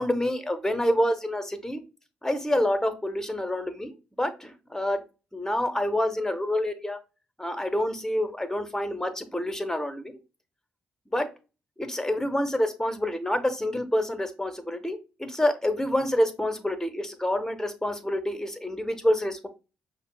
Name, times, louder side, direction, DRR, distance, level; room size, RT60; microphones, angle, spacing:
voice 1, 0.0-1.8 2.2-3.9 4.2-5.0 5.3-7.0 7.4-10.0 11.1-11.3 11.8-19.5, left 1 dB, 10° left, 9 dB, 0.8 m, -27 dB
5.5 x 2.0 x 2.3 m, 0.31 s
hypercardioid pair, 45°, 5 cm